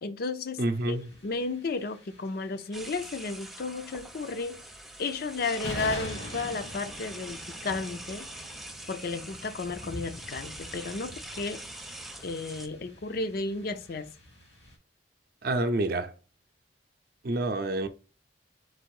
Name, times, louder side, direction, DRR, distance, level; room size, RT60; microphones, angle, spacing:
voice 1, 0.0-1.0 1.2-4.6 5.0-8.3 8.9-11.6 12.2-14.1, left 3 dB, 55° left, 0.5 m, -33 dB
voice 2, 0.6-1.1 15.4-16.1 17.2-17.9, right 2 dB, 55° right, 0.6 m, -28 dB
sound 1, 0.7-14.8, left 1 dB, 80° left, 1.8 m, -45 dB
sound 2, 2.7-12.7, right 1 dB, ahead, 0.4 m, -43 dB
4.0 x 2.5 x 4.7 m
head